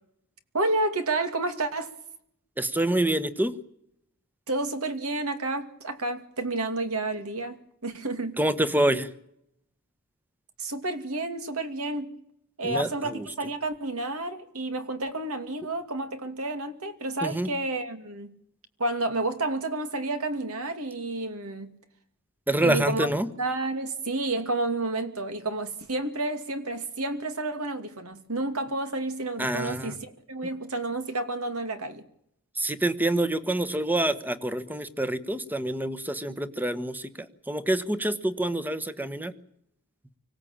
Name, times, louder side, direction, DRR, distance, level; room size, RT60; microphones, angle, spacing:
voice 1, 0.5-1.9 4.5-7.6 7.8-8.4 10.6-12.2 12.6-18.3 18.8-21.8 22.6-23.1 23.4-32.0, right 2 dB, 70° right, 2.6 m, -30 dB
voice 2, 2.6-3.5 8.4-9.1 12.6-13.3 17.2-17.5 22.5-23.3 29.4-29.9 32.6-37.1 37.5-39.3, right 1 dB, 10° right, 1.3 m, -26 dB
25.0 x 17.0 x 8.9 m
head